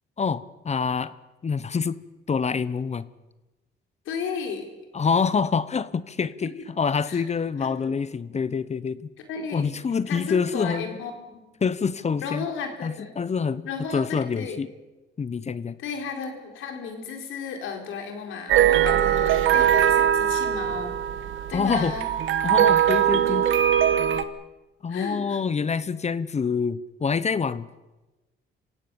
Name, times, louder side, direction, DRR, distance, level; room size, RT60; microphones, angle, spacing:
voice 1, 0.2-1.1 1.4-2.0 2.3-3.1 4.9-9.0 9.5-11.0 11.6-12.5 12.8-13.7 13.9-14.7 15.2-15.8 21.5-22.0 22.4-23.5 24.8-27.7, left 5 dB, 35° left, 17 dB, 0.9 m, -26 dB
voice 2, 4.1-4.7 6.4-6.7 7.1-7.2 7.6-8.0 9.3-9.8 10.1-11.4 12.2-13.1 13.6-14.0 14.3-14.6 15.8-21.0 21.5-22.1 24.9-25.4, left 5 dB, 85° left, 4 dB, 4.2 m, -34 dB
sound 1, 18.5-24.2, right 10 dB, 80° right, 1.4 m, -21 dB
27.0 x 16.5 x 7.0 m, 1.1 s
cardioid pair, 90°, 20 cm